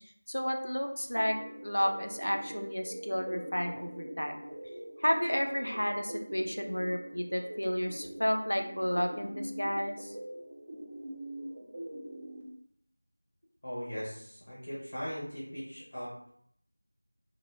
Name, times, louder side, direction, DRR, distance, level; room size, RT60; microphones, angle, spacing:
voice 1, 0.3-1.4 1.6-4.3 5.0-10.1, equal, 75° left, 4 dB, 0.4 m, -31 dB
sound 1, 1.1-12.4, right 1 dB, 20° right, 0.3 m, -43 dB
voice 2, 13.6-16.3, equal, 25° left, -8 dB, 0.6 m, -39 dB
2.1 x 2.0 x 3.2 m, 0.66 s
figure-of-eight pair, 175°, 0 cm